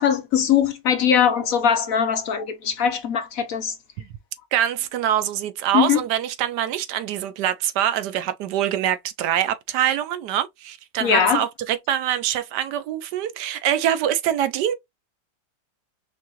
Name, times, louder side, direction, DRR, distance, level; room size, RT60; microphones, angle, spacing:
voice 1, 0.0-3.7 5.7-6.0 11.0-11.4, left 8 dB, 65° left, 0.9 m, -21 dB
voice 2, 4.5-14.7, right 11 dB, 75° right, 1.2 m, -24 dB
4.6 x 3.5 x 2.9 m
omnidirectional pair, 1.9 m